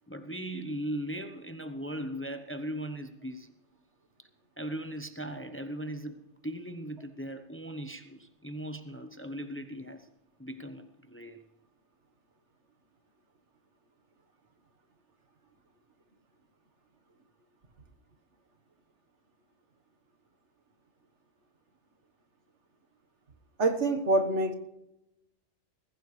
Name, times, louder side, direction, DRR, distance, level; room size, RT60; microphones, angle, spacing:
voice 1, 0.1-3.5 4.6-10.1 10.4-11.4, right 1 dB, 10° left, 0.9 m, -38 dB
voice 2, 23.6-24.5, right 2 dB, 75° right, 1.8 m, -25 dB
21.0 x 15.5 x 3.3 m
omnidirectional pair, 1.2 m